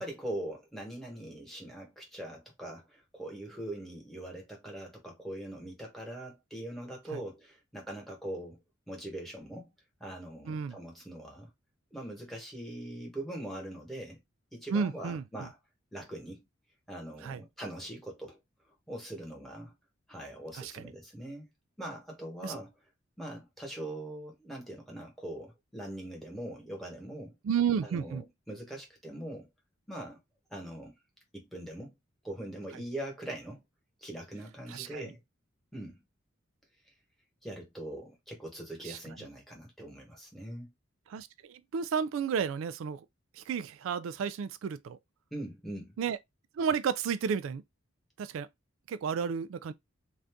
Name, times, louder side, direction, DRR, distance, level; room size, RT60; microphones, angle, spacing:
voice 1, 0.0-8.6 8.9-9.7 10.0-11.5 11.9-14.2 14.5-15.6 15.9-16.4 16.9-18.4 18.9-19.7 20.1-21.5 21.8-22.7 23.2-27.3 27.8-29.5 29.9-30.2 30.5-30.9 31.3-32.0 32.2-33.6 34.0-35.2 35.7-36.0 37.4-40.7 45.3-45.9, right 1 dB, ahead, 1.1 m, -42 dB
voice 2, 10.5-10.8 14.7-15.2 17.2-17.4 20.6-20.8 22.4-22.6 27.4-28.2 34.7-35.1 38.8-39.0 41.1-43.0 43.4-45.0 46.0-46.2 46.6-47.6 48.2-48.5 48.9-49.7, right 6 dB, 80° right, 0.3 m, -32 dB
2.6 x 2.4 x 3.5 m
head